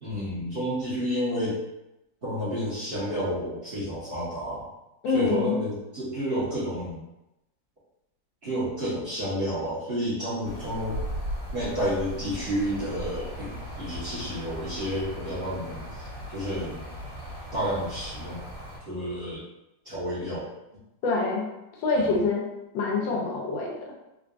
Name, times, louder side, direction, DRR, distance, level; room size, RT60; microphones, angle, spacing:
voice 1, 0.0-1.6 2.2-4.7 5.1-7.0 8.4-11.0 11.5-16.8 17.5-18.4 18.8-19.4 19.8-20.5 21.9-22.1, equal, 35° right, -10 dB, 1.2 m, -30 dB
voice 2, 5.0-5.6 21.0-21.5 21.8-22.4 22.7-24.0, left 3 dB, 85° left, -1 dB, 1.4 m, -25 dB
sound 1, 10.4-18.8, equal, 55° right, 1.9 m, -37 dB
3.8 x 2.4 x 2.3 m, 0.92 s
omnidirectional pair, 2.0 m